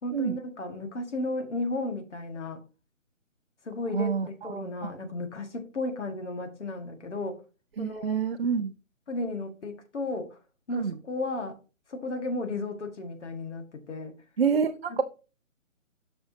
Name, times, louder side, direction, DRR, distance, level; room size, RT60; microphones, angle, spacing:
voice 1, 0.0-2.6 3.6-7.4 7.8-8.2 9.1-10.4 10.7-11.6 11.9-14.2 14.9-15.0, left 2 dB, 60° left, 1.7 m, -34 dB
voice 2, 3.9-4.9 7.8-8.7 10.8-11.0 14.4-15.0, right 6 dB, 50° right, 0.5 m, -28 dB
7.7 x 6.2 x 2.7 m
hypercardioid pair, 160°, 39 cm